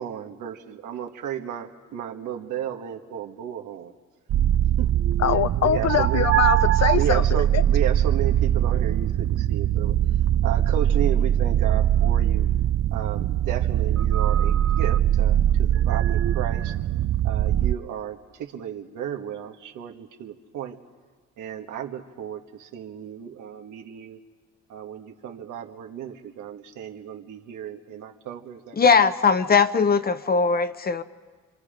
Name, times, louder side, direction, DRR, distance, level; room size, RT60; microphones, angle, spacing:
voice 1, 0.0-3.9 4.8-4.9 5.6-6.3 6.9-9.9 10.4-12.5 12.9-16.8 17.2-20.8 21.4-24.2 24.7-29.0, right 9 dB, 85° right, 1.7 m, -33 dB
sound 1, 4.3-17.7, right 11 dB, 55° right, 0.6 m, -21 dB
voice 2, 5.2-7.6, left 9 dB, 60° left, 0.9 m, -23 dB
voice 3, 28.8-31.0, left 5 dB, 30° left, 0.9 m, -20 dB
26.5 x 26.5 x 5.2 m
cardioid pair, 90°, 30 cm